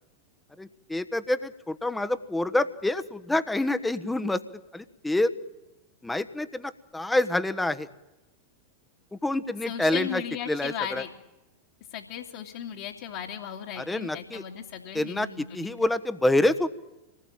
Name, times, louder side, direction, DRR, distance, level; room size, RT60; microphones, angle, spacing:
voice 1, 0.6-4.4 4.7-5.3 6.0-7.9 9.1-11.0 13.7-14.4 14.9-16.7, left 1 dB, 5° left, 12 dB, 1.3 m, -27 dB
voice 2, 9.7-11.1 11.9-15.8, left 9 dB, 50° left, -2 dB, 2.7 m, -36 dB
27.0 x 19.5 x 9.0 m, 1.0 s
figure-of-eight pair, 90°, 0 cm